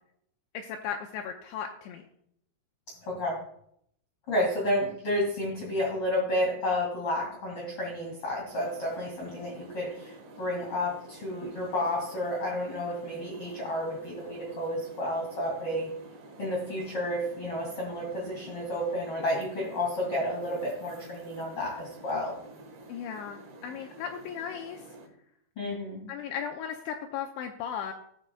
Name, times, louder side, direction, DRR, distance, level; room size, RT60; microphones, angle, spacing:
voice 1, 0.5-2.0 22.9-24.8 26.1-27.9, left 8 dB, 85° left, 3 dB, 2.7 m, -36 dB
voice 2, 3.0-3.4 4.3-15.9 16.4-22.3 25.6-26.1, left 1 dB, 35° left, -1 dB, 2.4 m, -31 dB
sound 1, 8.5-25.1, right 2 dB, 60° right, 2.2 m, -49 dB
18.0 x 6.2 x 2.3 m, 0.70 s
omnidirectional pair, 5.6 m